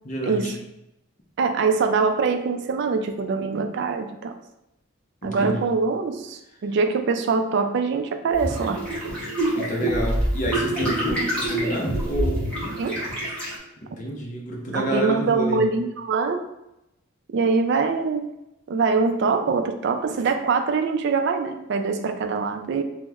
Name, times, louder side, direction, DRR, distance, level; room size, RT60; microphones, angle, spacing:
voice 1, 0.0-0.5 5.2-5.6 9.6-12.5 13.8-15.7, right 1 dB, 35° left, -2 dB, 0.6 m, -29 dB
voice 2, 1.4-4.3 5.2-8.8 12.8-13.0 14.7-16.4 17.3-18.3 18.7-22.8, right 4 dB, 55° right, 7 dB, 0.3 m, -23 dB
sound 1, 8.3-13.5, right 1 dB, 5° left, 1.0 m, -26 dB
3.0 x 2.0 x 3.5 m, 0.88 s
head